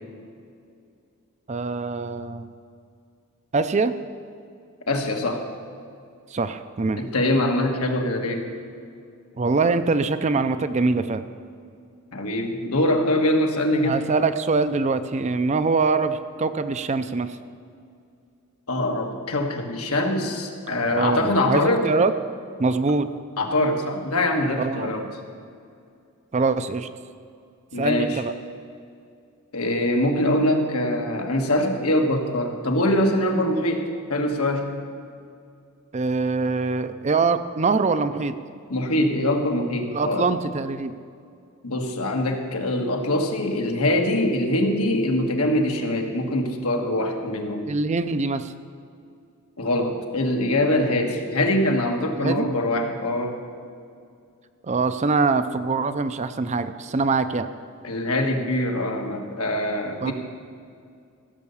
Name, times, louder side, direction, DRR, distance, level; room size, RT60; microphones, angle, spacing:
voice 1, 1.5-2.4 3.5-3.9 6.3-7.0 9.4-11.2 13.8-17.4 20.9-22.1 22.6-23.1 24.6-25.1 26.3-26.9 27.8-28.3 35.9-38.3 39.9-41.0 47.7-48.5 52.1-52.5 54.7-57.5 60.0-60.1, right 4 dB, 30° right, 11 dB, 0.4 m, -23 dB
voice 2, 4.9-5.5 7.0-8.5 12.1-14.0 18.7-21.9 23.4-25.1 27.7-28.2 29.5-34.8 38.7-40.3 41.6-47.7 49.6-53.4 57.8-60.1, left 1 dB, 85° left, 3 dB, 1.5 m, -23 dB
15.5 x 6.7 x 7.0 m, 2.4 s
head